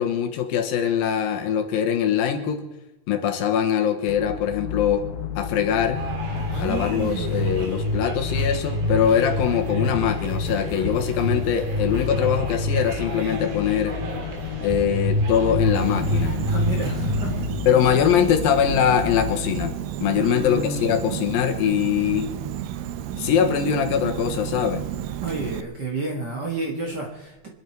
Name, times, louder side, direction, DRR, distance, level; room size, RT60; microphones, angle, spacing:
voice 1, 0.0-2.7 3.1-5.1 5.4-6.0 6.6-14.0 14.6-16.3 17.7-19.7 20.0-22.3 23.2-24.8, left 8 dB, 70° left, 5 dB, 2.7 m, -22 dB
sound 1, 4.1-19.8, left 10 dB, 85° left, 2.9 m, -33 dB
sound 2, 5.9-17.5, equal, 65° right, 4.1 m, -28 dB
voice 2, 6.5-7.4 16.4-17.3 20.1-21.2 25.2-27.5, right 3 dB, 45° right, 0 dB, 1.3 m, -31 dB
Insect, 15.7-25.6, right 11 dB, 80° right, 2.1 m, -32 dB
26.0 x 11.0 x 4.6 m, 1.0 s
omnidirectional pair, 4.8 m